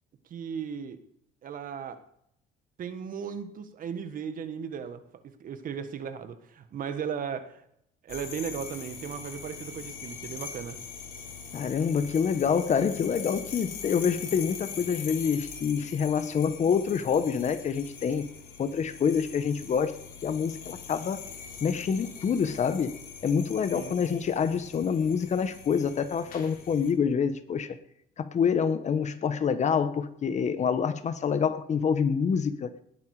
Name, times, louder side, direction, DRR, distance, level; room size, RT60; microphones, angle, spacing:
voice 1, 0.3-1.0 1.4-2.0 2.8-7.6 8.0-10.8 23.7-24.0, right 7 dB, 55° right, 10 dB, 1.6 m, -36 dB
sound 1, 8.1-26.9, left 7 dB, 60° left, 3.8 m, -42 dB
voice 2, 11.5-18.3 18.6-19.9 20.2-21.2 21.6-22.9 23.2-27.8 28.2-32.7, left 6 dB, 45° left, 11 dB, 1.3 m, -27 dB
19.5 x 8.8 x 5.0 m, 0.74 s
cardioid pair, 110°, 17 cm